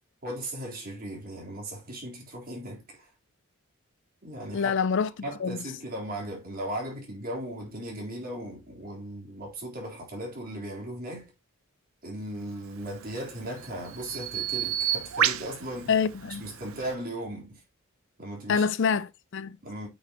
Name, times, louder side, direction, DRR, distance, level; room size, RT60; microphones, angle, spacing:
voice 1, 0.2-3.1 4.2-4.7 5.2-11.3 12.0-15.9 16.3-17.6 18.2-18.7 19.6-19.9, right 1 dB, 40° right, 3.9 m, -37 dB
voice 2, 4.5-5.1 5.4-5.6 15.9-16.4 18.5-19.6, left 6 dB, 55° left, 0.5 m, -26 dB
Bird vocalization bird call bird song, 12.7-16.9, right 10 dB, 70° right, 0.7 m, -32 dB
8.3 x 6.2 x 3.0 m
head